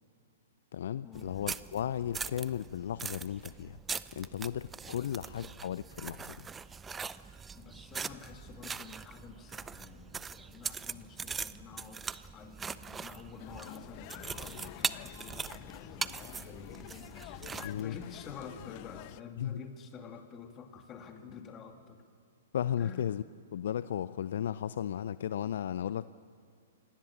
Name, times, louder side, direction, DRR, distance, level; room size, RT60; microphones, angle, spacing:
voice 1, 0.7-3.8 4.1-6.5 17.6-18.0 19.4-19.6 22.5-23.2 23.5-26.1, left 10 dB, 60° left, 17 dB, 0.5 m, -35 dB
sound 1, 1.1-17.8, right 5 dB, 15° right, 0.6 m, -41 dB
voice 2, 7.6-12.1 12.3-17.3 17.7-22.0 22.8-23.0, left 6 dB, 25° left, 5 dB, 2.6 m, -49 dB
sound 2, 13.4-19.2, left 15 dB, 40° left, 0.8 m, -48 dB
26.5 x 19.0 x 7.3 m, 2.3 s
figure-of-eight pair, 115°, 0 cm